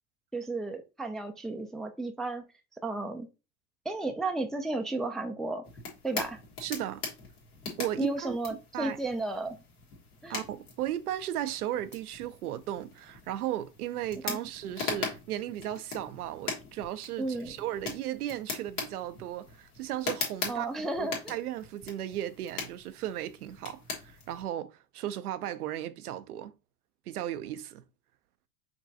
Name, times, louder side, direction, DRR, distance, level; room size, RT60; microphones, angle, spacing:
voice 1, 0.3-2.4 2.8-3.3 3.9-5.6 6.0-6.4 8.0-9.6 10.2-10.4 14.3-14.4 17.2-17.5 20.5-21.3, right 2 dB, ahead, 0.3 m, -33 dB
sound 1, 5.6-24.4, left 4 dB, 80° left, 1.8 m, -41 dB
voice 2, 6.6-7.0 7.8-8.4 8.7-9.0 10.3-26.5 27.1-27.8, right 12 dB, 80° right, 0.6 m, -36 dB
5.2 x 3.0 x 2.7 m
hypercardioid pair, 80°, 45 cm